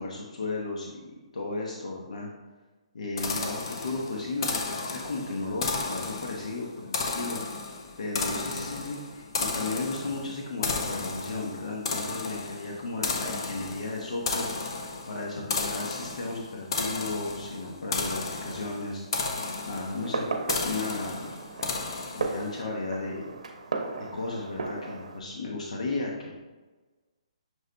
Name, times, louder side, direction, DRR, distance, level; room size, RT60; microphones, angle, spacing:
voice 1, 0.0-2.3 2.9-7.4 8.0-19.0 19.7-20.2 20.6-21.3 22.1-23.3 24.1-26.3, left 3 dB, 80° left, -2 dB, 0.8 m, -34 dB
sound 1, 3.2-22.5, left 3 dB, 40° left, 0.5 m, -34 dB
Fireworks, 19.9-25.2, right 3 dB, 85° right, 0.6 m, -35 dB
6.4 x 3.8 x 2.2 m, 1.3 s
hypercardioid pair, 170°, 4 cm